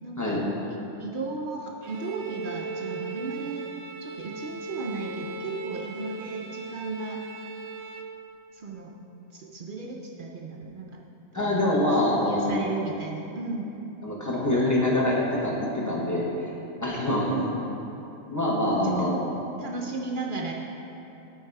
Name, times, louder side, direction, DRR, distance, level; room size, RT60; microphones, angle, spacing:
voice 1, 0.0-3.6 4.0-7.2 8.5-8.9 9.3-11.0 11.3-11.7 12.3-13.7 17.1-17.6 18.8-19.2 19.6-20.5, right 4 dB, 55° right, 0 dB, 0.6 m, -35 dB
Bowed string instrument, 1.8-8.2, right 3 dB, 75° right, 1.0 m, -38 dB
voice 2, 11.3-12.6 14.0-16.3 16.8-17.4 18.3-19.1, left 1 dB, 15° left, -4 dB, 1.0 m, -25 dB
9.6 x 4.6 x 4.6 m, 3.0 s
omnidirectional pair, 1.4 m